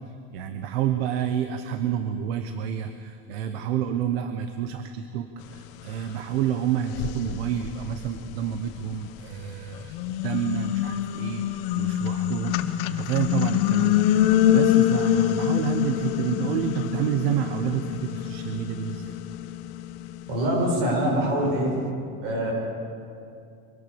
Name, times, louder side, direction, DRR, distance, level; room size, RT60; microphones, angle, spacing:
voice 1, 0.3-19.1, right 9 dB, 85° right, 8 dB, 1.2 m, -29 dB
sound 1, 6.2-6.3 6.9-9.2 9.7-21.0, left 12 dB, 65° left, 1.2 m, -25 dB
voice 2, 20.3-21.7 22.2-22.5, right 1 dB, 65° right, 0 dB, 7.3 m, -24 dB
24.0 x 17.5 x 7.1 m, 2.5 s
cardioid pair, 180°, 30 cm